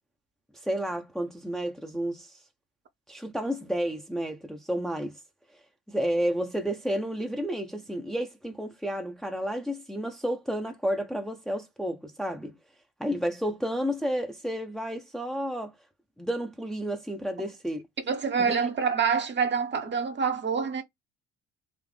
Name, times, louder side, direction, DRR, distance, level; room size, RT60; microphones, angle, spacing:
voice 1, 0.6-2.4 3.1-5.2 5.9-12.5 13.0-15.7 16.2-17.9 18.4-18.5, equal, ahead, 0.8 m, -31 dB
voice 2, 18.1-20.8, right 6 dB, 35° right, 1.0 m, -26 dB
4.2 x 2.5 x 3.2 m
hypercardioid pair, 60°, 33 cm